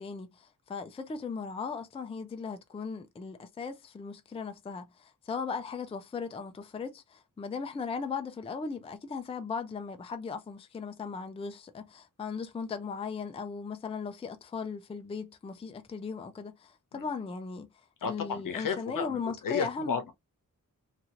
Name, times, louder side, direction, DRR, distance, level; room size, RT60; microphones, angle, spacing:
voice 1, 0.0-17.7 18.0-20.0, left 5 dB, 20° left, 0.4 m, -37 dB
voice 2, 18.0-20.1, left 6 dB, 75° left, 0.8 m, -33 dB
2.9 x 2.4 x 2.8 m
wide cardioid pair, 160°, 33 cm